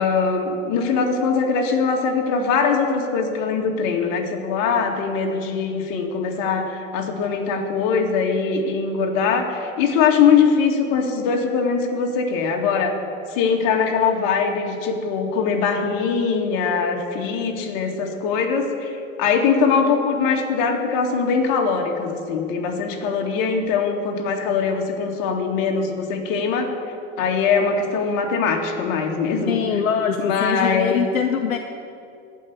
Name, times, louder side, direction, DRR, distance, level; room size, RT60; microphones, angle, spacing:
voice 1, 0.0-13.0 13.3-18.9 19.2-26.7 27.2-29.8 30.2-31.0, left 5 dB, 50° left, 2 dB, 2.3 m, -22 dB
voice 2, 29.5-31.6, left 7 dB, 80° left, 5 dB, 0.9 m, -23 dB
16.0 x 5.6 x 9.9 m, 2.5 s
hypercardioid pair, 90°, 40 cm